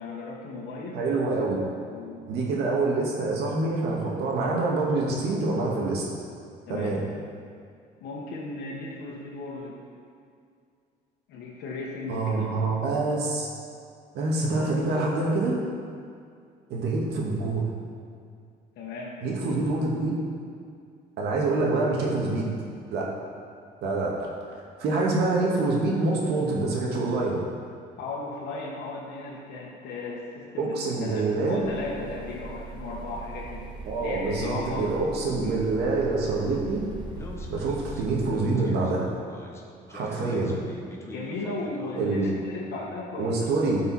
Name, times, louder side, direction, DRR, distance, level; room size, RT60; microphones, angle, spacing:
voice 1, 0.0-1.0 1.9-2.3 6.7-6.9 8.0-9.9 11.3-12.5 18.8-19.2 28.0-33.7 34.0-35.0 35.4-35.5 41.0-43.7, left 3 dB, 75° left, -4 dB, 1.5 m, -36 dB
voice 2, 0.9-1.6 2.3-6.0 6.7-7.0 12.1-13.5 14.1-15.6 16.7-17.7 19.2-20.2 21.2-22.5 22.9-23.1 23.8-27.4 30.6-31.6 33.9-36.8 37.5-39.1 39.9-40.5 42.0-42.3 43.2-43.8, right 3 dB, 75° right, -3 dB, 2.1 m, -26 dB
sound 1, 31.6-38.3, right 3 dB, 25° right, 1.5 m, -40 dB
Speech, 37.1-42.3, left 2 dB, 15° left, 1.2 m, -43 dB
12.5 x 5.5 x 4.3 m, 2.3 s
cardioid pair, 110°, 17 cm